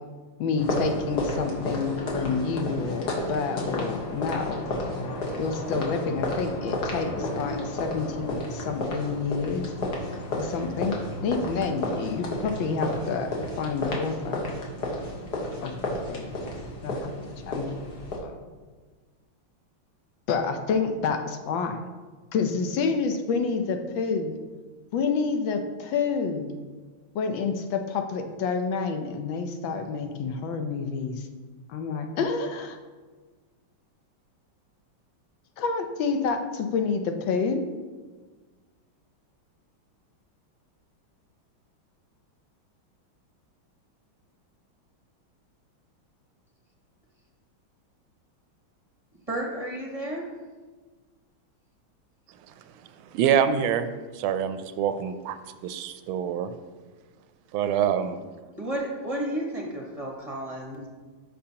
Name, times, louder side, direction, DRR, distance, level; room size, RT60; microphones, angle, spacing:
voice 1, 0.4-4.6 5.4-9.7 10.3-11.0 11.2-14.5 15.6-15.7 16.1-16.2 16.8-17.1 17.5-17.7 18.2-18.4 20.3-21.8 22.3-24.4 24.9-26.6 27.1-31.3 31.7-32.8 35.6-37.6, left 5 dB, 75° left, 6 dB, 1.4 m, -28 dB
sound 1, 0.6-18.2, left 1 dB, 55° left, 1.8 m, -32 dB
voice 2, 49.3-50.2 58.6-60.9, right 1 dB, 30° right, -2 dB, 0.7 m, -32 dB
voice 3, 53.1-56.5 57.5-58.2, right 8 dB, 85° right, 10 dB, 1.4 m, -26 dB
12.5 x 5.6 x 2.9 m, 1.4 s
omnidirectional pair, 2.2 m